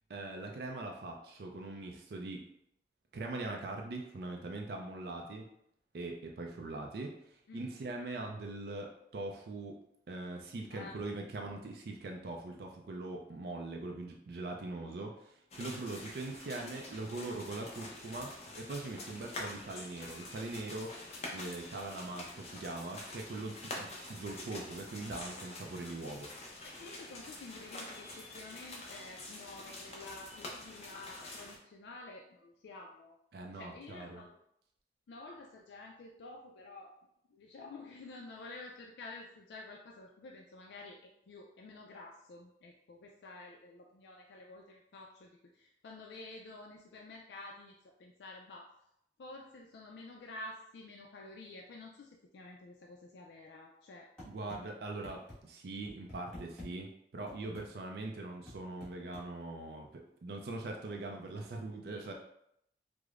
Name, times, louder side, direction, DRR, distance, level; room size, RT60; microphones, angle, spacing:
voice 1, 0.1-2.4 3.1-5.5 5.9-9.8 10.1-20.9 21.3-26.3 33.3-34.2 54.2-62.1, right 2 dB, 65° right, 2 dB, 0.4 m, -42 dB
voice 2, 10.7-11.2 26.6-33.1 33.5-34.3 35.1-36.9 37.3-41.0 41.3-45.3 45.5-47.7 48.0-48.7 49.2-54.1, left 2 dB, 80° left, 0 dB, 0.3 m, -50 dB
sound 1, 15.5-31.6, left 2 dB, 35° left, 0.6 m, -46 dB
sound 2, 54.2-54.6 55.0-55.4 55.9-56.7 57.3-57.7 58.5-59.3, left 1 dB, 5° left, 1.4 m, -48 dB
4.8 x 2.0 x 2.4 m, 0.76 s
head